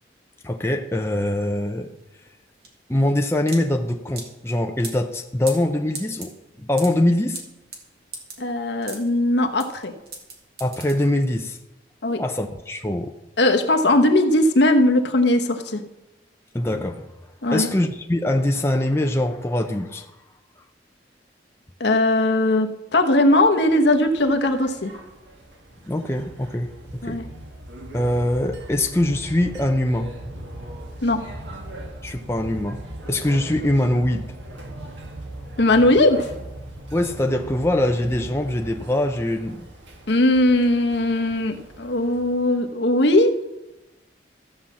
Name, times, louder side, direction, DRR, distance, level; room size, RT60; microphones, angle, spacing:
voice 1, 0.4-1.9 2.9-7.4 10.6-11.6 12.2-13.1 16.5-17.1 17.5-20.1 25.9-27.2 27.9-30.1 32.0-32.8 33.1-34.3 36.9-39.7, left 1 dB, 15° left, 4 dB, 0.6 m, -23 dB
sound 1, 1.6-11.5, right 3 dB, 55° right, 2.2 m, -40 dB
voice 2, 8.4-9.9 12.0-12.2 13.4-15.8 17.4-17.7 21.8-24.9 27.0-27.3 31.0-31.2 35.6-36.3 40.1-43.3, left 1 dB, 70° left, 5 dB, 1.1 m, -19 dB
sound 2, 23.5-42.6, right 1 dB, 80° right, 1.6 m, -39 dB
14.0 x 5.6 x 7.3 m, 0.96 s
head